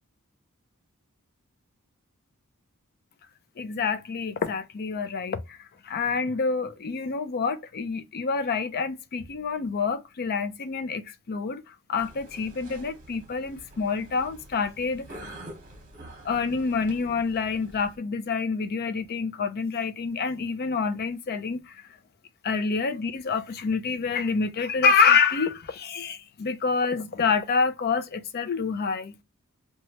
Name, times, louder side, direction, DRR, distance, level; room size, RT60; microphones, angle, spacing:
voice 1, 3.6-5.6 5.8-15.2 16.2-21.8 22.4-29.1, left 5 dB, 45° left, 0.4 m, -27 dB
sound 1, 12.0-18.0, right 1 dB, 35° right, 1.0 m, -47 dB
3.0 x 2.3 x 2.8 m
head